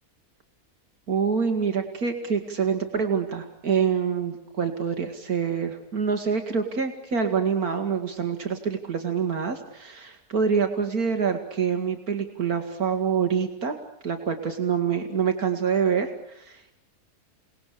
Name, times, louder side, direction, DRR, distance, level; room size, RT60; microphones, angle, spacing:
voice 1, 1.1-13.8 14.0-16.7, right 6 dB, 75° right, 6 dB, 2.5 m, -26 dB
28.5 x 19.0 x 8.4 m, 0.80 s
omnidirectional pair, 1.6 m